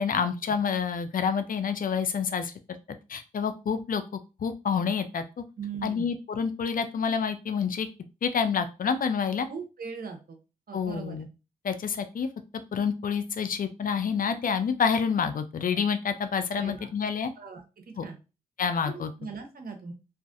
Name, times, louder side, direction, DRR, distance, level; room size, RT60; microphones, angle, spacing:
voice 1, 0.0-2.8 3.1-5.2 5.8-7.9 8.2-9.5 10.7-11.3 11.6-12.3 12.7-17.3 18.0-18.1 18.6-19.1, left 6 dB, 60° left, 9 dB, 0.4 m, -28 dB
voice 2, 5.6-6.1 9.5-10.4 10.7-11.2 16.5-16.9 17.4-17.6 18.0-18.2 18.8-19.9, right 5 dB, 65° right, 4 dB, 0.7 m, -39 dB
2.5 x 2.3 x 2.5 m, 0.30 s
supercardioid pair, 40°, 16 cm